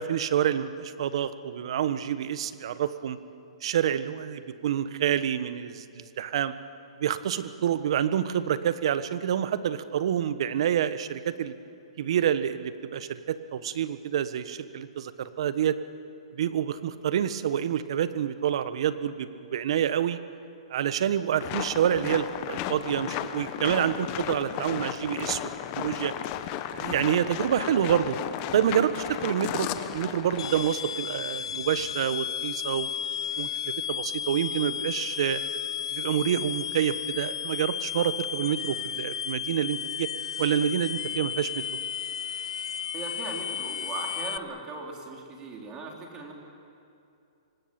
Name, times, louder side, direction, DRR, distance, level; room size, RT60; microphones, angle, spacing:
voice 1, 0.0-3.2 3.6-6.5 7.0-11.5 12.0-15.8 16.3-20.2 20.7-25.5 25.8-26.1 26.7-28.2 28.5-32.9 33.4-35.4 35.9-40.1 40.4-41.6, right 9 dB, 60° right, 12 dB, 1.3 m, -27 dB
sound 1, 21.4-31.0, left 11 dB, 35° left, 1.2 m, -34 dB
sound 2, 30.4-44.4, left 9 dB, 70° left, 0.7 m, -33 dB
voice 2, 42.9-46.3, right 3 dB, 20° right, 1 dB, 3.8 m, -38 dB
25.5 x 19.0 x 8.9 m, 2.6 s
hypercardioid pair, 150°, 3 cm